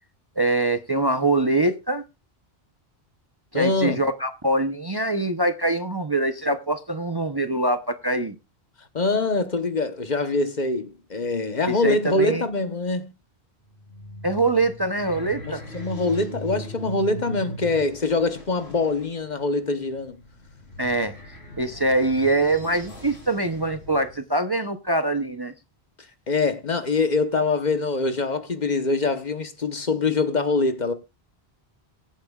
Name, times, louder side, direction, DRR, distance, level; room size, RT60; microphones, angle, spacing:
voice 1, 0.4-2.0 3.5-8.3 11.7-12.4 14.2-15.6 20.8-21.1 21.6-25.5, right 2 dB, 25° right, 0.7 m, -23 dB
voice 2, 3.5-4.0 8.9-13.1 15.4-20.2 26.3-30.9, left 3 dB, 45° left, 1.1 m, -24 dB
sound 1, 13.6-24.2, equal, 90° left, 4.3 m, -40 dB
22.5 x 8.8 x 2.4 m
omnidirectional pair, 1.1 m